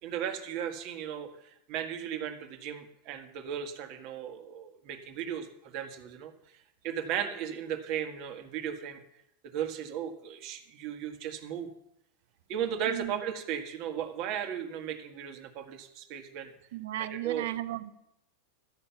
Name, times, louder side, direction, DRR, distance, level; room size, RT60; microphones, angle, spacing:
voice 1, 0.0-9.0 9.4-11.7 12.5-16.5 17.0-17.5, right 9 dB, 45° right, 6 dB, 1.6 m, -36 dB
voice 2, 16.7-17.9, right 14 dB, 70° right, 13 dB, 0.9 m, -35 dB
13.5 x 9.0 x 5.8 m, 0.79 s
supercardioid pair, 150°, 0 cm